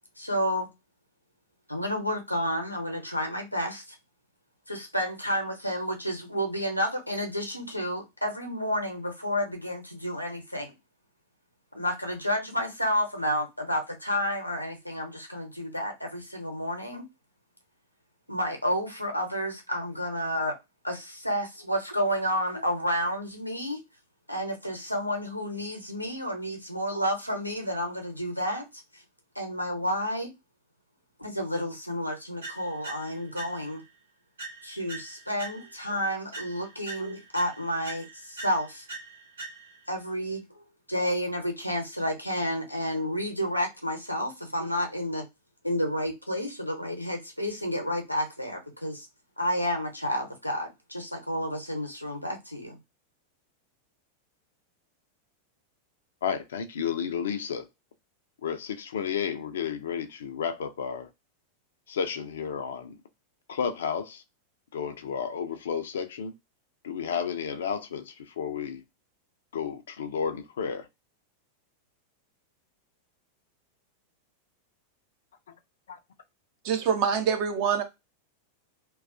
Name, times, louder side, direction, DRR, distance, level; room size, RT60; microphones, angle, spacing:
voice 1, 0.2-0.7 1.7-4.0 4.7-10.7 11.7-17.1 18.3-20.6 20.8-23.8 24.3-28.6 29.3-30.3 31.2-33.8 34.6-38.8 39.9-45.2 45.6-49.1 49.4-52.8, equal, 90° left, 0.7 m, -30 dB
sound 1, 32.4-33.9 34.4-35.9 36.3-39.9, right 3 dB, 70° right, 1.0 m, -43 dB
voice 2, 56.2-57.7 58.4-61.1 61.9-63.0 63.5-64.2 64.7-66.3 66.8-68.8 69.5-70.9, left 7 dB, 60° left, 0.4 m, -32 dB
voice 3, 76.6-77.8, right 7 dB, 45° right, 0.6 m, -25 dB
2.3 x 2.3 x 2.4 m
figure-of-eight pair, 90°, 0 cm